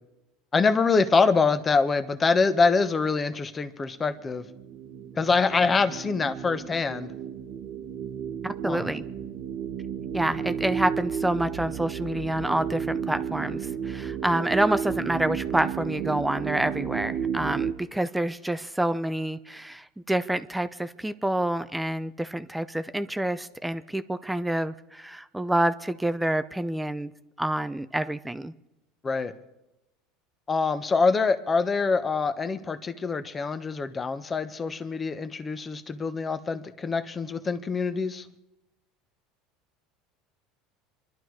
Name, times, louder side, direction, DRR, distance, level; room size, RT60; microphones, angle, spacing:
voice 1, 0.5-4.4 5.2-7.1 8.6-8.9 29.0-29.3 30.5-38.3, left 4 dB, 25° left, 10 dB, 1.2 m, -25 dB
sound 1, 3.9-17.7, right 8 dB, 55° right, 1.4 m, -33 dB
voice 2, 8.4-9.0 10.1-27.1 27.4-28.5, right 1 dB, 5° right, 11 dB, 0.6 m, -28 dB
26.5 x 11.5 x 4.8 m, 0.96 s
supercardioid pair, 110°, 0 cm